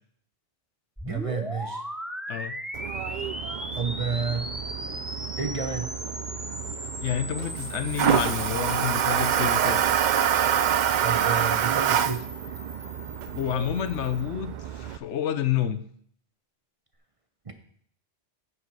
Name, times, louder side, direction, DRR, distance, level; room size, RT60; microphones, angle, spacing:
sound 1, 1.0-14.3, equal, ahead, 0.6 m, -38 dB
voice 1, 1.0-1.8 3.7-4.5 5.4-5.9 11.0-12.2 17.5-17.6, right 5 dB, 30° right, 6 dB, 0.9 m, -30 dB
Toilet flush, 2.7-15.0, right 9 dB, 60° right, 0.5 m, -27 dB
voice 2, 7.0-9.8 13.3-15.8, left 10 dB, 75° left, 11 dB, 1.0 m, -29 dB
9.6 x 7.4 x 4.7 m, 0.62 s
omnidirectional pair, 1.2 m